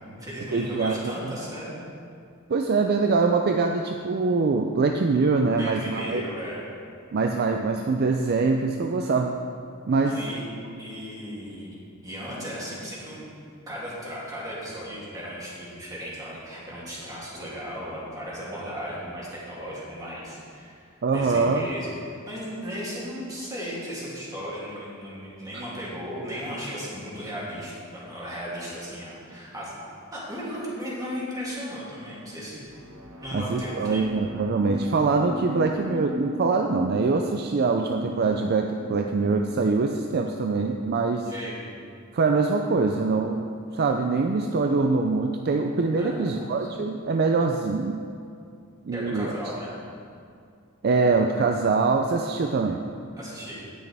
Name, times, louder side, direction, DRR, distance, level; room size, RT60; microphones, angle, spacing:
voice 1, 0.0-1.8 5.5-6.6 10.0-10.4 10.8-11.7 12.0-13.3 13.7-20.9 21.1-21.9 22.3-29.7 30.1-32.7 33.2-34.0 41.2-41.6 46.0-46.7 48.9-49.8 53.2-53.7, equal, 15° right, -8 dB, 2.8 m, -36 dB
voice 2, 0.5-1.1 2.5-6.2 7.1-9.4 9.9-10.2 21.0-21.7 33.3-41.3 42.1-43.5 43.7-48.0 48.9-49.3 50.8-52.8, right 4 dB, 50° right, 4 dB, 0.4 m, -24 dB
sound 1, 32.6-40.2, left 1 dB, 65° right, 1.3 m, -39 dB
18.0 x 6.2 x 3.4 m, 2.4 s
head